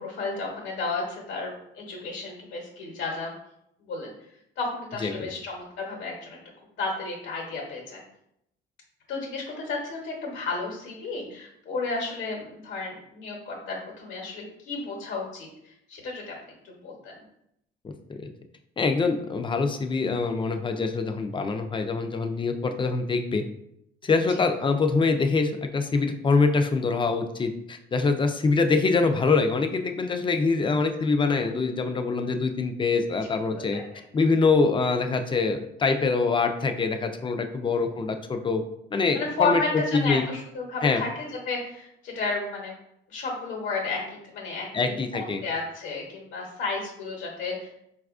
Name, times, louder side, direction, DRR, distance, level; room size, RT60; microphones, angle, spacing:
voice 1, 0.0-3.3 3.8-4.1 4.6-6.4 6.8-8.0 9.1-16.4 16.6-17.2 22.7-22.8 33.2-33.8 37.6-37.9 39.1-42.7 43.1-47.7, left 3 dB, 75° left, -1 dB, 0.9 m, -32 dB
voice 2, 18.8-23.4 24.0-33.8 34.1-38.6 38.9-39.6 40.0-40.2 40.8-41.0 44.7-45.4, left 4 dB, 25° left, 6 dB, 0.4 m, -24 dB
4.1 x 2.3 x 2.4 m, 0.78 s
cardioid pair, 90°, 20 cm